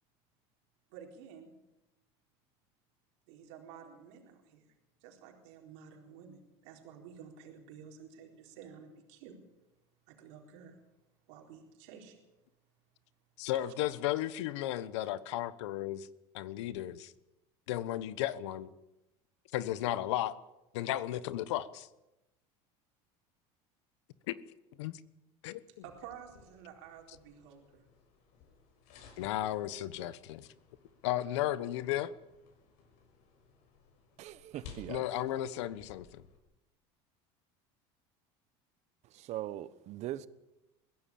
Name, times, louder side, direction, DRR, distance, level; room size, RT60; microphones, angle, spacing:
voice 1, 0.9-1.5 3.3-4.7 5.0-9.3 10.1-10.8 11.3-12.2 13.5-13.7 25.8-27.8, right 7 dB, 75° right, 2 dB, 4.2 m, -52 dB
voice 2, 13.4-16.1 16.3-17.1 17.7-18.7 19.5-20.4 20.7-21.9 24.3-24.4 24.8-25.0 25.4-25.6 29.2-30.5 31.0-32.1 34.9-36.2, left 13 dB, 85° left, 16 dB, 1.2 m, -34 dB
Fridge Opening, 25.8-36.4, left 5 dB, 70° left, 6.8 m, -58 dB
voice 3, 34.2-35.0 39.0-40.3, right 13 dB, 50° right, 16 dB, 1.1 m, -41 dB
22.5 x 16.0 x 8.7 m, 0.97 s
supercardioid pair, 120°, 15 cm